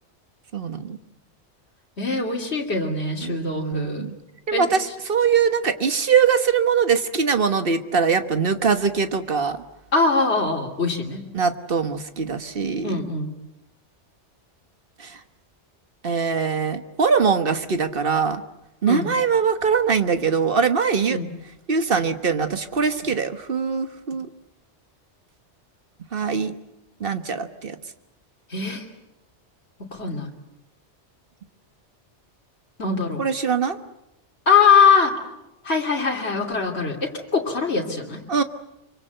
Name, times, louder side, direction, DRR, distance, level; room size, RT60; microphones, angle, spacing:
voice 1, 0.5-1.0 3.2-4.1 4.5-9.6 11.3-13.0 15.0-15.2 16.0-18.4 18.8-21.2 21.7-24.3 26.1-26.5 27.0-27.8 33.2-33.8 38.3-38.4, right 6 dB, 50° right, 9 dB, 1.5 m, -22 dB
voice 2, 2.0-4.0 4.5-4.7 9.9-11.2 12.8-13.3 18.9-19.1 21.1-21.3 28.5-28.8 29.9-30.3 32.8-33.2 34.5-35.1 35.6-38.2, left 5 dB, 60° left, 0 dB, 3.1 m, -22 dB
25.0 x 24.0 x 8.0 m, 0.89 s
omnidirectional pair, 1.2 m